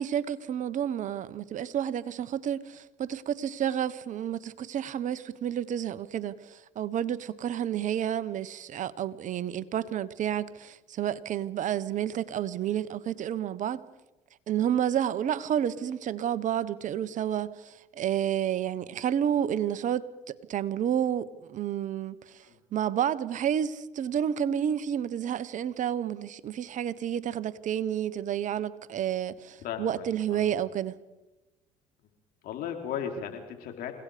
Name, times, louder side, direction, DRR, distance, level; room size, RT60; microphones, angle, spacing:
voice 1, 0.0-13.8 14.5-20.1 20.5-22.4 22.7-31.0, right 9 dB, 50° right, 1.1 m, -30 dB
voice 2, 29.6-30.6 32.4-33.9, left 8 dB, 65° left, 4.0 m, -36 dB
29.0 x 17.5 x 5.1 m
supercardioid pair, 75°, 16 cm